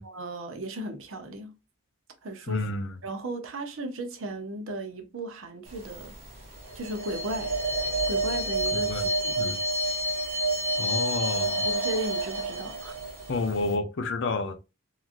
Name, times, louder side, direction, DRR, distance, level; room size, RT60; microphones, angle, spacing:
voice 1, 0.0-1.5 2.2-2.7 3.0-6.1 6.7-7.5 8.1-9.6 11.4-13.0, right 1 dB, 60° right, 0.7 m, -36 dB
voice 2, 2.5-2.9 8.7-9.1 9.4-9.6 10.8-11.7 13.3-14.6, left 3 dB, 55° left, 0.5 m, -30 dB
sound 1, 5.7-6.3 6.6-13.7, right 2 dB, 30° right, 0.8 m, -29 dB
3.0 x 2.4 x 2.5 m
head